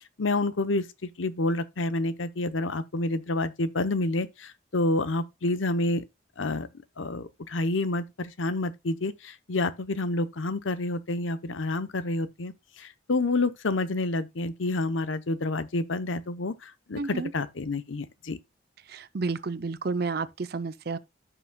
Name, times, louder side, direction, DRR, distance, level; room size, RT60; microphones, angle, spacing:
voice 1, 0.2-6.0 6.4-6.7 7.0-12.5 12.8-18.4, left 2 dB, 80° left, 0.8 m, -29 dB
voice 2, 17.0-17.3 18.9-21.0, right 4 dB, 50° right, 0.6 m, -31 dB
14.0 x 6.0 x 2.3 m
head